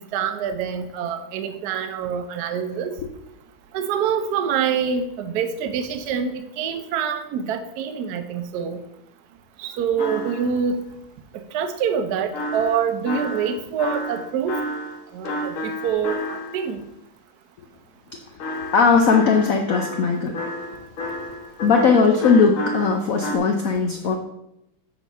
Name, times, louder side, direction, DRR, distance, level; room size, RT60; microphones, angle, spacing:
voice 1, 0.0-2.9 3.7-8.8 9.6-10.8 11.3-14.6 15.1-16.8, right 7 dB, 65° right, 8 dB, 1.0 m, -26 dB
sound 1, 10.0-10.7 12.3-16.7 18.4-23.4, left 1 dB, 55° left, 0.9 m, -31 dB
voice 2, 18.7-20.3 21.6-24.2, left 5 dB, 85° left, 4 dB, 0.7 m, -18 dB
8.2 x 4.1 x 5.4 m, 0.84 s
omnidirectional pair, 2.4 m